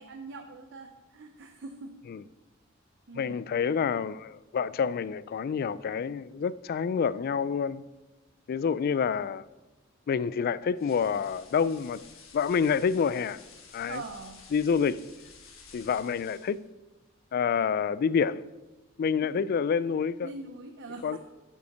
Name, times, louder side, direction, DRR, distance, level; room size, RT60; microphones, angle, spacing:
voice 1, 0.0-1.9 3.1-3.4 13.9-14.4 19.2-19.4 20.2-21.2, right 3 dB, 60° right, 0.7 m, -42 dB
voice 2, 3.1-7.8 8.5-9.4 10.1-12.0 12.3-13.4 13.7-14.0 14.5-15.0 15.7-16.6 17.3-18.4 19.0-20.3 21.0-21.2, left 6 dB, 50° left, 0.3 m, -28 dB
sound 1, 10.8-16.7, left 5 dB, 80° left, 1.6 m, -52 dB
8.5 x 5.5 x 6.7 m
head